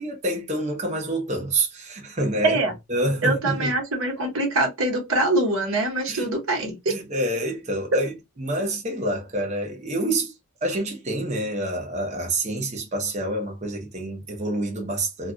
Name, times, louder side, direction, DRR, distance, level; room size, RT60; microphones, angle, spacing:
voice 1, 0.0-2.6 2.9-3.8 6.1-6.3 6.9-10.3 10.6-15.3, right 1 dB, 35° right, 0.9 m, -27 dB
voice 2, 3.2-6.9, right 2 dB, 90° right, 1.2 m, -24 dB
2.4 x 2.3 x 3.8 m
head